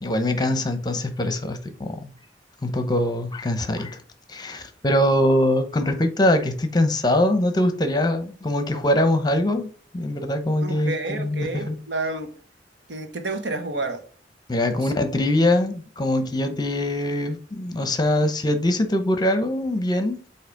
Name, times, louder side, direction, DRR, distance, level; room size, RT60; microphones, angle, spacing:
voice 1, 0.0-2.1 2.6-4.0 4.3-9.7 9.9-11.8 14.5-20.2, left 1 dB, 25° left, 0.8 m, -23 dB
voice 2, 10.6-12.3 12.9-14.0 14.7-14.8, right 2 dB, 80° right, 1.2 m, -30 dB
8.0 x 2.8 x 5.1 m
head